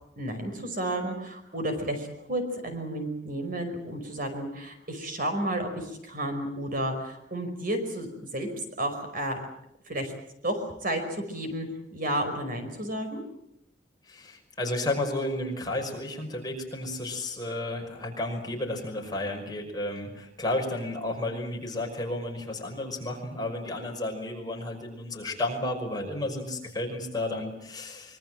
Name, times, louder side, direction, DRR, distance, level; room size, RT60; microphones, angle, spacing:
voice 1, 0.2-9.4 9.9-10.1 10.4-13.2, right 1 dB, 50° right, 7 dB, 5.3 m, -32 dB
voice 2, 14.1-28.2, left 1 dB, 20° left, 1 dB, 5.6 m, -32 dB
25.5 x 23.5 x 7.6 m, 0.77 s
head